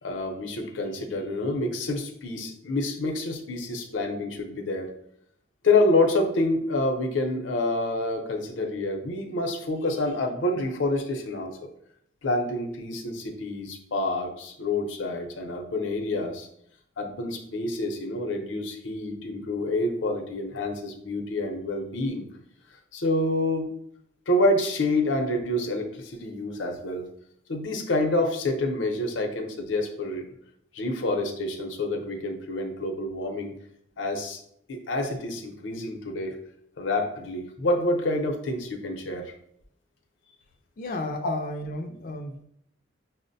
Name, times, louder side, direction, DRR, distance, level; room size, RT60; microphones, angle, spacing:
voice 1, 0.0-4.9 5.6-11.6 12.2-16.5 17.0-22.2 22.9-23.7 24.3-27.1 27.5-30.2 30.7-33.5 34.0-34.4 34.7-36.4 36.8-39.3 41.2-41.3, left 2 dB, 90° left, 4 dB, 0.6 m, -27 dB
voice 2, 40.8-42.4, left 1 dB, 45° left, 3 dB, 0.3 m, -33 dB
5.8 x 2.1 x 2.6 m, 0.72 s
head